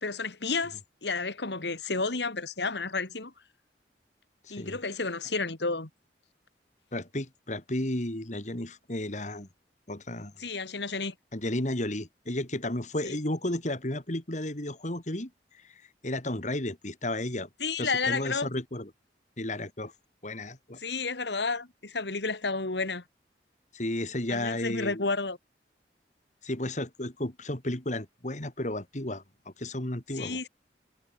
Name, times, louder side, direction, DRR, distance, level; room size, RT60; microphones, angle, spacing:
voice 1, 0.0-3.3 4.5-5.9 10.4-11.1 13.0-13.2 17.6-18.5 20.8-23.0 24.3-25.4 30.1-30.5, left 4 dB, 80° left, 2.2 m, -31 dB
voice 2, 4.4-4.8 6.9-9.5 9.9-10.3 11.3-15.3 16.0-17.5 17.8-18.9 19.4-19.9 20.2-20.8 23.7-25.0 26.4-29.2 29.6-30.4, left 1 dB, 45° left, 2.8 m, -33 dB
head